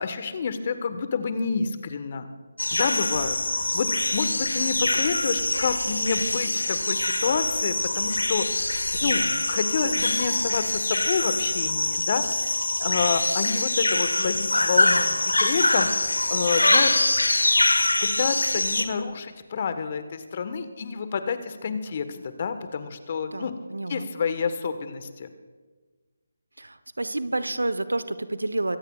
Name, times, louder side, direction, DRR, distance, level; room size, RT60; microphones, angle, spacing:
voice 1, 0.0-2.3 2.7-3.4 3.7-12.5 12.8-15.9 16.3-17.1 18.0-23.5 23.9-25.3, left 5 dB, 40° left, 10 dB, 1.3 m, -28 dB
sound 1, 2.6-18.9, left 2 dB, 80° left, 1.4 m, -24 dB
voice 2, 9.0-9.5 23.3-24.1 26.6-28.8, right 2 dB, 80° right, 13 dB, 0.9 m, -30 dB
24.5 x 16.5 x 2.4 m, 1.4 s
figure-of-eight pair, 150°, 0 cm